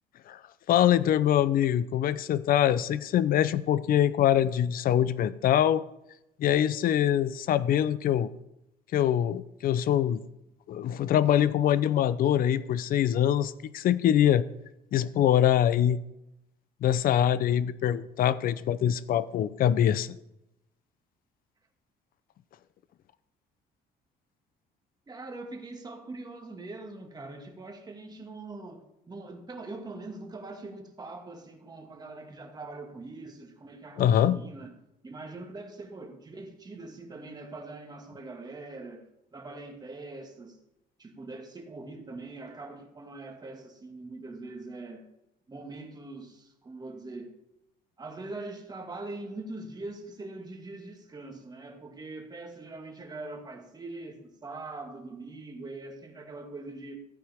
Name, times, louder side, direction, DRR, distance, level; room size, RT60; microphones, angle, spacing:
voice 1, 0.7-5.8 6.4-8.3 8.9-10.2 10.7-14.4 14.9-16.0 16.8-20.2 34.0-34.4, left 10 dB, 60° left, 0.6 m, -24 dB
voice 2, 25.1-34.7 35.0-40.6 41.0-45.0 45.5-47.3 48.0-57.0, right 2 dB, 25° right, 2.0 m, -42 dB
15.0 x 9.1 x 3.6 m
cardioid pair, 110°, 17 cm